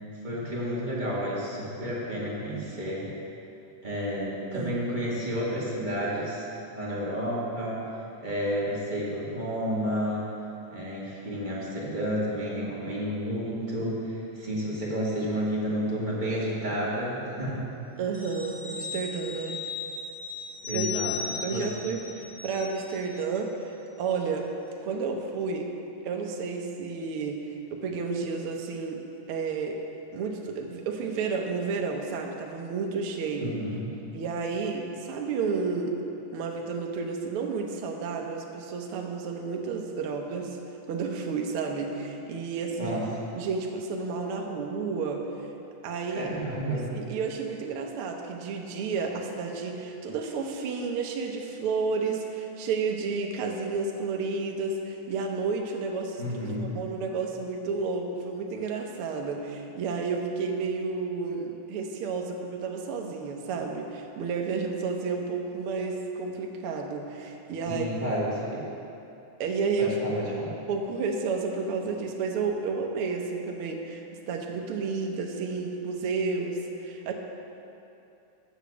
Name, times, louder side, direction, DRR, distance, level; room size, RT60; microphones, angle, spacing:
voice 1, 0.2-3.1 3.8-6.5 6.7-7.8 8.2-10.3 10.7-17.6 20.6-21.1 21.5-21.7 33.4-33.9 42.8-43.1 46.1-46.9 56.2-56.7 67.7-68.6 69.8-70.5, equal, 20° right, -7 dB, 1.4 m, -31 dB
voice 2, 18.0-19.6 20.7-21.0 21.4-23.7 24.0-24.5 24.8-25.7 26.0-29.0 29.3-29.8 30.1-33.5 34.1-36.0 36.3-40.6 40.9-43.0 43.3-45.3 45.8-46.3 46.9-67.9 69.4-70.2 70.7-77.1, right 4 dB, 70° right, 1 dB, 1.3 m, -31 dB
sound 1, 18.1-23.2 23.6-23.7, left 5 dB, 65° left, 1.0 m, -37 dB
8.4 x 7.2 x 6.9 m, 2.7 s
omnidirectional pair, 3.5 m